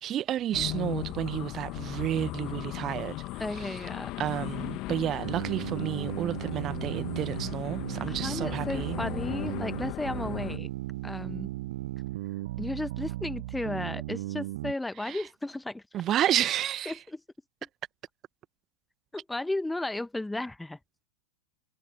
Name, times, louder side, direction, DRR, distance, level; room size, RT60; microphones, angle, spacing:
voice 1, 0.0-3.8 4.2-8.9 15.0-15.3 15.9-17.0, right 12 dB, 30° right, 1.2 m, -31 dB
sound 1, 0.5-10.6, left 20 dB, 40° left, 1.9 m, -37 dB
voice 2, 3.4-4.1 8.1-10.7 11.0-11.5 12.6-15.8 16.8-17.2 19.1-20.8, left 2 dB, 5° left, 1.4 m, -34 dB
sound 2, 5.2-14.7, right 17 dB, 55° right, 1.1 m, -36 dB
figure-of-eight pair, 90°, 0 cm